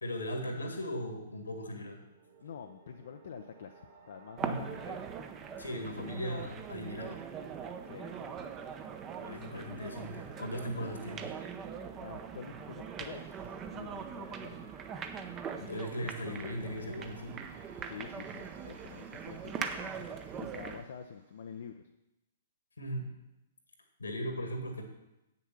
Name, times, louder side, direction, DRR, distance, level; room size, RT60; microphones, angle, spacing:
voice 1, 0.0-2.0 4.4-4.7 5.6-7.2 9.2-11.3 15.6-17.4 22.8-23.1 24.0-24.8, equal, 75° left, 4 dB, 1.9 m, -38 dB
sound 1, 1.9-21.7, right 5 dB, 45° right, 2.9 m, -59 dB
voice 2, 2.4-5.1 7.8-8.5 12.0-14.7 17.8-20.1 20.4-21.9, left 7 dB, 60° left, 5 dB, 0.6 m, -47 dB
sound 2, 4.4-20.9, right 7 dB, 25° right, 0.8 m, -42 dB
8.3 x 6.8 x 6.2 m, 0.93 s
figure-of-eight pair, 115°, 0 cm